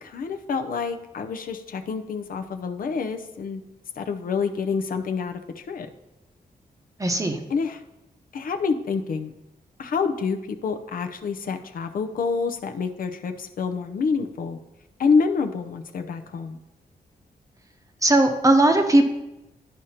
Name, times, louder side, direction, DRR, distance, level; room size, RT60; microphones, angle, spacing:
voice 1, 0.0-3.6 4.0-5.4 5.7-5.9 7.5-7.8 8.3-9.3 9.8-14.6 15.0-16.6, left 5 dB, 65° left, 6 dB, 0.6 m, -27 dB
voice 2, 7.0-7.4 18.0-19.0, right 1 dB, 20° right, 5 dB, 0.8 m, -18 dB
11.5 x 5.0 x 2.8 m, 0.94 s
wide cardioid pair, 115°, 16 cm